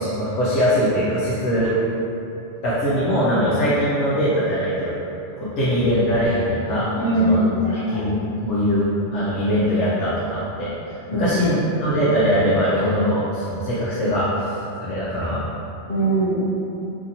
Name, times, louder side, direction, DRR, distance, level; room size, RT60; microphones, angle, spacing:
voice 1, 0.0-1.7 2.6-4.9 5.4-6.9 7.2-7.4 7.8-14.5 14.8-15.5, equal, 75° left, -10 dB, 0.9 m, -21 dB
voice 2, 6.9-8.0 11.1-11.6 15.9-16.4, right 1 dB, 50° left, -13 dB, 1.6 m, -21 dB
2.8 x 2.7 x 2.6 m, 2.9 s
omnidirectional pair, 1.3 m